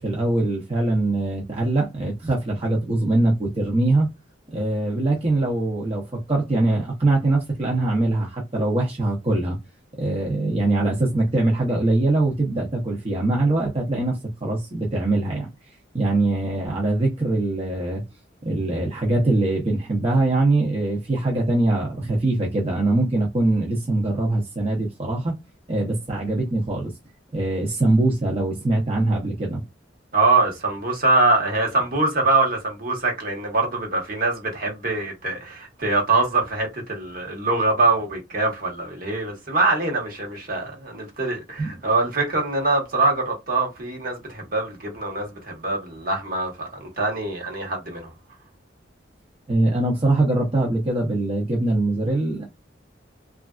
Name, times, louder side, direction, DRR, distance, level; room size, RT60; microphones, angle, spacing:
voice 1, 0.0-4.1 4.5-9.6 10.0-15.5 15.9-18.0 18.4-25.3 25.7-26.9 27.3-29.6 41.6-41.7 49.5-52.5, right 2 dB, 30° right, 0.7 m, -22 dB
voice 2, 30.1-48.1, right 3 dB, 50° right, 1.1 m, -23 dB
3.2 x 2.4 x 2.3 m
head